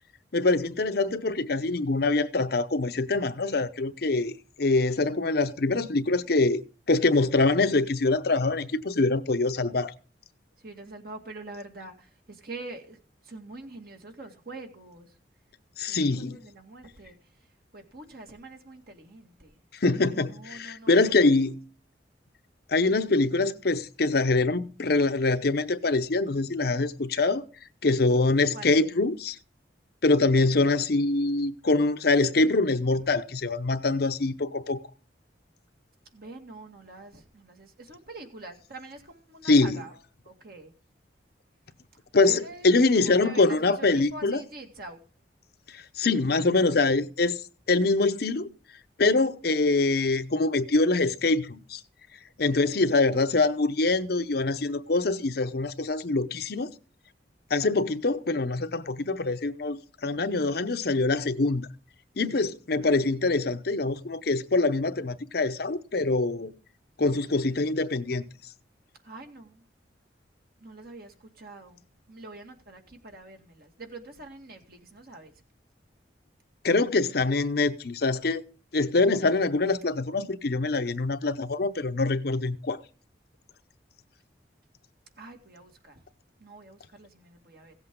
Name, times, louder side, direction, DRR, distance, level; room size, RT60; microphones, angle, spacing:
voice 1, 0.3-4.3 4.6-6.6 6.9-9.9 15.8-16.4 19.8-21.6 22.7-27.4 27.8-29.4 30.0-34.8 39.4-39.8 42.1-44.4 45.7-47.4 47.7-48.5 49.0-51.8 52.4-56.7 57.5-61.7 62.2-66.5 67.0-68.3 76.6-78.4 78.7-82.8, left 3 dB, 60° left, 0.8 m, -24 dB
voice 2, 10.6-13.0 13.2-15.1 15.9-17.2 17.7-19.6 20.3-21.1 28.5-28.8 36.1-40.0 40.2-40.7 42.2-45.0 69.0-69.6 70.6-71.8 72.1-75.3 85.2-86.0 86.4-87.7, right 2 dB, 55° right, 2.1 m, -45 dB
16.5 x 8.0 x 3.7 m
head